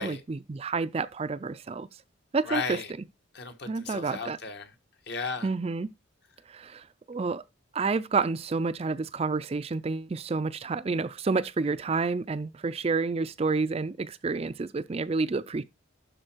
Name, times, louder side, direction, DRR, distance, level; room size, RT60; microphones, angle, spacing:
voice 1, 0.0-1.9 2.3-2.8 3.7-4.4 5.4-5.9 6.5-7.4 7.7-15.6, right 4 dB, 30° right, 0.4 m, -29 dB
voice 2, 2.5-2.9 3.3-4.7 5.1-5.5, left 4 dB, 55° left, 1.3 m, -34 dB
12.0 x 4.3 x 4.4 m
head